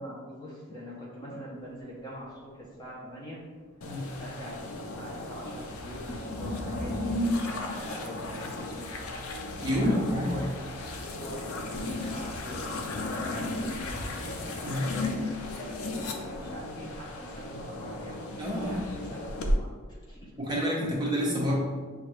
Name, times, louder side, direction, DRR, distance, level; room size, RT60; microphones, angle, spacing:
voice 1, 0.0-3.4 4.2-9.1 9.8-10.5 10.8-14.3 15.0-18.3 18.6-19.3 19.6-20.9, equal, 20° left, -4 dB, 0.6 m, -43 dB
sound 1, 1.6-3.9 4.1-15.1, equal, 65° left, 1.0 m, -48 dB
sound 2, 3.8-19.5, left 2 dB, 85° left, 0.5 m, -34 dB
voice 2, 3.8-4.1 9.6-10.4 14.6-15.0 18.4-18.9 20.4-21.5, equal, 20° right, -4 dB, 0.8 m, -28 dB
6.3 x 2.3 x 3.0 m, 1.5 s
head